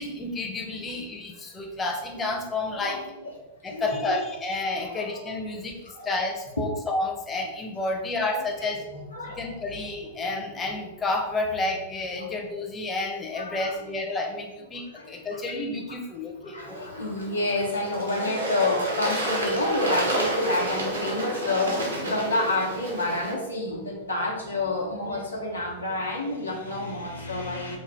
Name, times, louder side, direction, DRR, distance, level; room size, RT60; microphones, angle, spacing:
voice 1, 0.0-3.0 3.6-8.8 9.4-16.8, left 2 dB, 20° left, 1 dB, 0.7 m, -30 dB
voice 2, 2.8-3.3 3.6-4.2 4.8-5.3 5.9-6.1 8.3-9.4 12.1-12.3 13.3-13.7 14.9-15.4 15.9-16.0 16.4-27.8, left 2 dB, 90° left, -3 dB, 0.9 m, -29 dB
Bird / Water, 16.6-23.3, right 1 dB, 85° right, 1.2 m, -30 dB
sound 1, 19.5-20.6, right 5 dB, 50° right, 0.7 m, -36 dB
5.2 x 2.4 x 3.4 m, 1.1 s
figure-of-eight pair, 95°, 0 cm